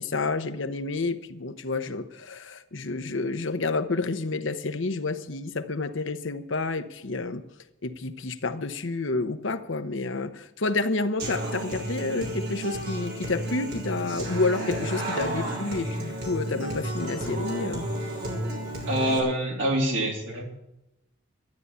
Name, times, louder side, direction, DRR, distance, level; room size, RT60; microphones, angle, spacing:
voice 1, 0.0-7.4 7.8-17.8, left 3 dB, 70° left, 10 dB, 0.9 m, -29 dB
Human voice / Acoustic guitar, 11.2-19.2, right 1 dB, 50° right, 3.9 m, -32 dB
voice 2, 18.9-20.4, right 1 dB, 65° right, -1 dB, 3.5 m, -25 dB
13.0 x 9.9 x 8.1 m, 0.87 s
head